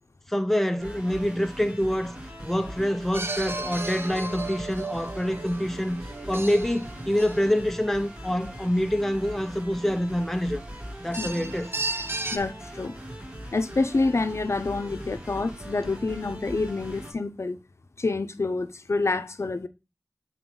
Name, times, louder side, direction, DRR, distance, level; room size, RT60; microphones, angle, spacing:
voice 1, 0.3-2.1 2.4-6.0 6.3-10.6 11.0-11.7, equal, 5° left, 0.7 m, -26 dB
sound 1, 0.8-17.1, equal, 20° right, 2.7 m, -41 dB
sound 2, 3.1-8.0 11.1-12.4, right 2 dB, 50° right, 1.1 m, -35 dB
voice 2, 11.2-11.6 12.3-12.9 13.5-17.6 18.0-19.7, left 3 dB, 70° left, 0.7 m, -27 dB
7.7 x 4.1 x 3.9 m
wide cardioid pair, 50°, 5 cm